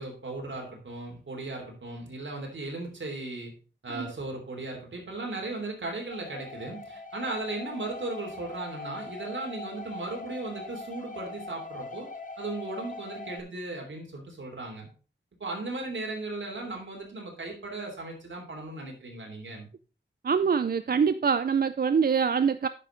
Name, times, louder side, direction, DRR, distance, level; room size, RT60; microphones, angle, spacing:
voice 1, 0.0-3.5 3.8-12.1 12.4-14.9 15.4-19.7, right 2 dB, 80° right, 3.1 m, -36 dB
sound 1, 6.1-13.4, left 3 dB, 45° left, 0.9 m, -42 dB
voice 2, 20.2-22.7, right 6 dB, 50° right, 0.4 m, -24 dB
9.9 x 6.5 x 3.8 m
wide cardioid pair, 75°, 19 cm